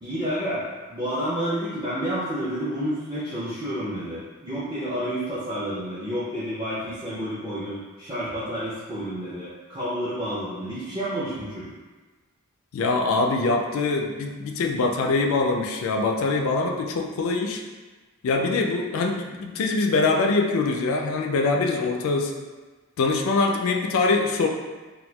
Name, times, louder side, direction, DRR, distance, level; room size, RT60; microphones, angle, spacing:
voice 1, 0.0-11.7, equal, 15° right, -11 dB, 0.5 m, -30 dB
voice 2, 12.7-17.6 18.2-22.3 23.0-24.5, left 3 dB, 65° left, 1 dB, 0.3 m, -23 dB
4.1 x 2.2 x 2.2 m, 1.3 s
head